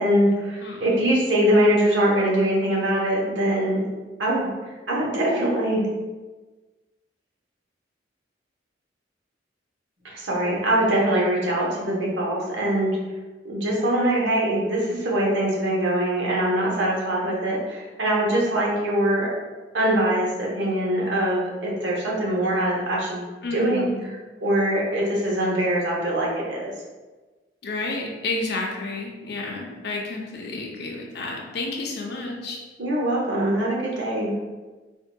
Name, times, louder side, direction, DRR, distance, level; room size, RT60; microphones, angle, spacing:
voice 1, 0.0-3.8 4.2-4.5 4.9-5.9 10.0-13.0 13.4-19.3 19.7-26.7 32.8-34.3, right 1 dB, 80° right, -4 dB, 1.0 m, -23 dB
voice 2, 0.6-0.9 23.4-24.1 27.6-32.6, left 3 dB, 60° left, 0 dB, 0.6 m, -31 dB
4.4 x 2.7 x 2.2 m, 1.3 s
head